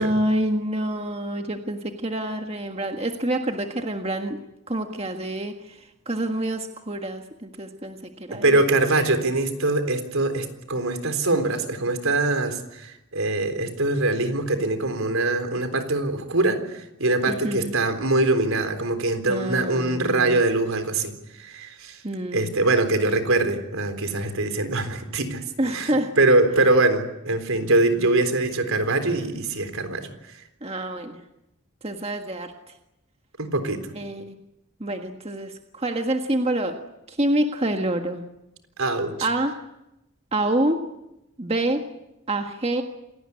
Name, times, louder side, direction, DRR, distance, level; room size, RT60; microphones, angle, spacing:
voice 1, 0.0-4.4 4.7-8.6 17.3-17.7 19.3-20.4 22.0-22.5 25.6-26.1 30.6-31.2 31.8-32.5 33.9-34.3 34.8-36.8 37.1-38.2 39.2-39.7 40.3-40.8 41.4-41.8 42.3-42.8, right 1 dB, 30° right, 4 dB, 1.6 m, -27 dB
voice 2, 8.4-22.0 22.3-25.4 25.7-30.1 33.4-33.9 38.8-39.1, right 2 dB, 75° right, 8 dB, 3.9 m, -23 dB
28.0 x 18.5 x 9.8 m, 0.90 s
head